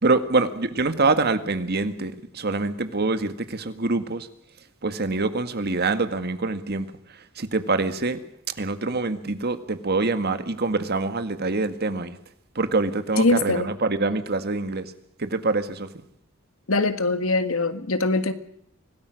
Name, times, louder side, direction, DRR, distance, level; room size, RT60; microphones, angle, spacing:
voice 1, 0.0-4.3 4.8-6.9 7.4-8.2 8.6-12.2 12.5-14.9 15.2-15.9, right 3 dB, 50° right, 10 dB, 1.8 m, -25 dB
voice 2, 13.2-13.7 16.7-18.3, left 3 dB, 90° left, 10 dB, 1.7 m, -22 dB
25.0 x 18.0 x 6.4 m, 0.74 s
head